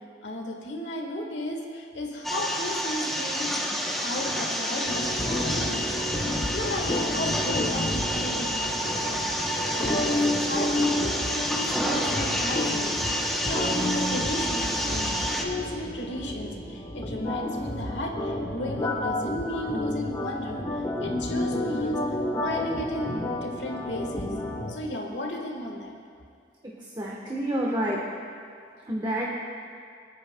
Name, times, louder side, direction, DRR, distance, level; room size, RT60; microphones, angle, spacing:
voice 1, 0.2-5.9 6.5-8.7 9.0-12.9 13.4-20.6 21.0-22.0 22.4-23.1 23.4-25.9, left 1 dB, 80° left, 0 dB, 1.6 m, -34 dB
sound 1, 2.2-15.4, equal, ahead, 0.9 m, -29 dB
sound 2, 4.9-24.7, left 1 dB, 25° left, 1.0 m, -31 dB
voice 2, 27.0-28.0 28.9-29.3, right 1 dB, 25° right, -3 dB, 1.2 m, -28 dB
26.0 x 9.4 x 2.3 m, 2.3 s
head